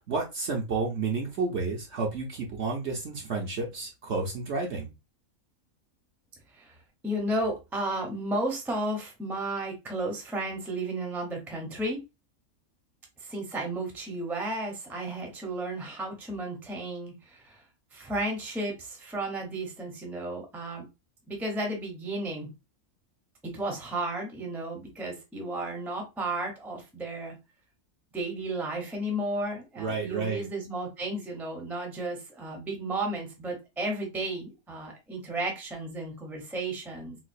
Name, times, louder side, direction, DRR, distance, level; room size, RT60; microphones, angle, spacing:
voice 1, 0.1-4.9 29.8-30.4, right 4 dB, 55° right, 1 dB, 0.9 m, -31 dB
voice 2, 7.0-12.0 13.2-17.6 17.9-20.8 21.3-22.5 23.4-27.4 28.1-37.2, right 1 dB, ahead, 2 dB, 0.7 m, -33 dB
4.0 x 2.4 x 2.5 m, 0.25 s
omnidirectional pair, 1.5 m